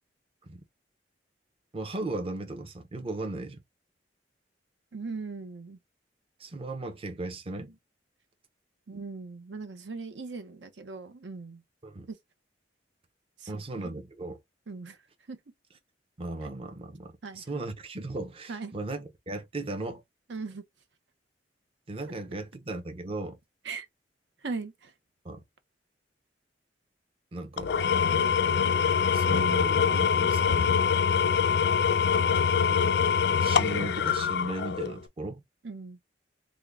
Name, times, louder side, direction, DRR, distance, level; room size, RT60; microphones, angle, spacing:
voice 1, 1.7-3.6 6.4-7.8 11.8-12.1 13.5-14.4 16.2-20.0 21.9-23.4 25.2-25.4 27.3-27.7 29.1-30.8 32.7-33.0 33.4-35.4, right 2 dB, 35° right, 0.6 m, -36 dB
voice 2, 4.9-5.8 8.9-11.6 12.1-12.2 13.4-13.9 14.7-15.0 15.3-15.4 17.2-17.6 18.5-18.7 20.3-20.6 23.6-23.9 24.4-24.9 35.6-36.0, right 4 dB, 80° right, 0.7 m, -39 dB
Engine / Tools, 27.6-35.0, left 6 dB, 65° left, 0.4 m, -24 dB
3.5 x 2.1 x 3.4 m
head